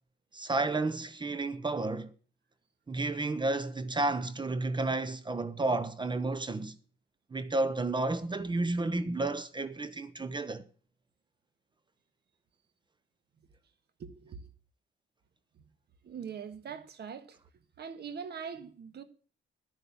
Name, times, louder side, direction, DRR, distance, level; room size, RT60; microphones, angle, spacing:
voice 1, 0.3-2.1 2.9-6.7 7.3-10.6, right 2 dB, 25° right, 0.9 m, -31 dB
voice 2, 14.0-14.4 16.0-17.4 17.8-19.0, right 6 dB, 55° right, 1.6 m, -42 dB
9.9 x 9.7 x 7.1 m
cardioid pair, 90°, 20 cm